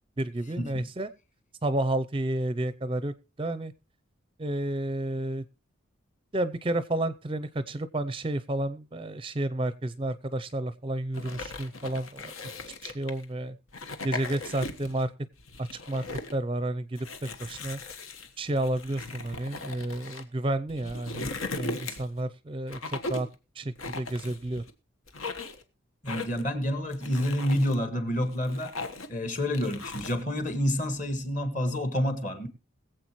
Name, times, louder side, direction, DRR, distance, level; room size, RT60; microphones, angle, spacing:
voice 1, 0.2-1.1 1.6-3.7 4.4-5.4 6.3-12.3 12.8-13.6 14.0-15.1 15.6-16.0 16.3-17.8 18.4-21.3 21.6-23.3 23.6-24.6, right 1 dB, 25° right, 14 dB, 0.5 m, -31 dB
sound 1, 11.1-13.2 13.7-15.0 15.4-16.4 17.0-20.2 20.7-22.2 22.7-23.3 23.8-24.7 25.1-25.6 26.1-26.5 26.9-27.8 28.2-29.2 29.5-30.2, left 3 dB, 80° left, 1.3 m, -38 dB
voice 2, 26.0-28.7 29.1-32.5, equal, 40° left, 9 dB, 1.8 m, -28 dB
21.5 x 7.8 x 3.0 m, 0.30 s
head